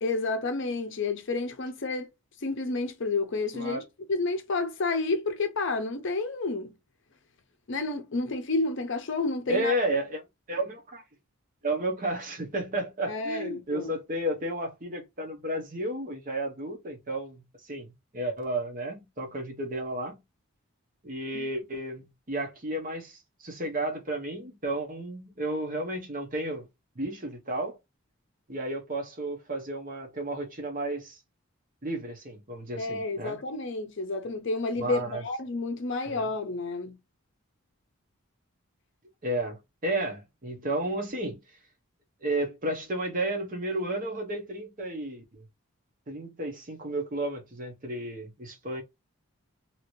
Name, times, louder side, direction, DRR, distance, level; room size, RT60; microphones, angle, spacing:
voice 1, 0.0-2.1 2.4-3.8 4.1-6.7 7.7-9.7 13.1-13.9 21.3-21.4 32.8-37.0, left 3 dB, 55° left, 0.6 m, -30 dB
voice 2, 9.5-11.0 11.6-20.2 21.0-26.7 27.0-27.8 28.5-31.2 31.8-33.4 34.8-35.2 36.1-36.2 39.2-41.4 42.2-45.4 46.1-48.8, right 1 dB, 40° right, 0.8 m, -32 dB
2.9 x 2.6 x 3.0 m
head